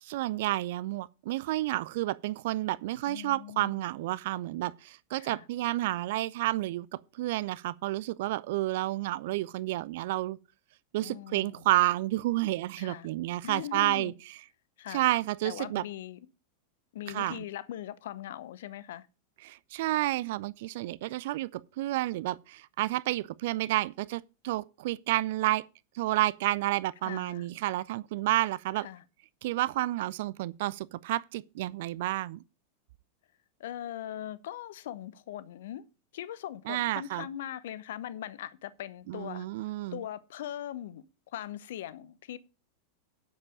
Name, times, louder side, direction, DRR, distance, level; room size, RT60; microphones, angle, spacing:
voice 1, 0.0-10.4 10.9-14.1 14.9-15.8 17.1-17.4 19.4-25.6 25.9-28.9 29.4-32.4 36.7-37.3 39.1-40.0, right 16 dB, 50° right, 0.4 m, -30 dB
voice 2, 3.1-3.8 5.2-5.5 11.0-11.6 12.8-13.1 13.4-14.1 14.8-15.0 15.4-16.3 16.9-19.1 27.0-27.5 28.8-29.0 33.6-35.8 36.1-39.5 39.9-41.1 41.3-42.4, left 11 dB, 55° left, 0.8 m, -40 dB
9.5 x 7.5 x 5.1 m
figure-of-eight pair, 90°, 0 cm